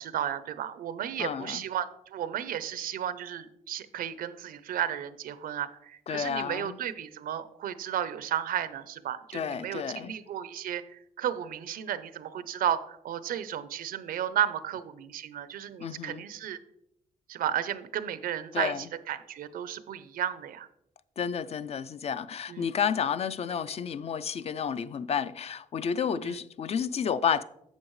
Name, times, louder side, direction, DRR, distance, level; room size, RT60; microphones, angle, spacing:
voice 1, 0.0-16.6 17.3-20.7 22.5-22.7 26.2-26.3, right 10 dB, 90° right, 0.6 m, -33 dB
voice 2, 1.2-1.6 6.1-6.8 9.3-10.1 15.8-16.2 18.5-18.8 21.2-27.4, left 7 dB, 45° left, 0.4 m, -31 dB
11.0 x 7.1 x 3.1 m
cardioid pair, 125°, 14 cm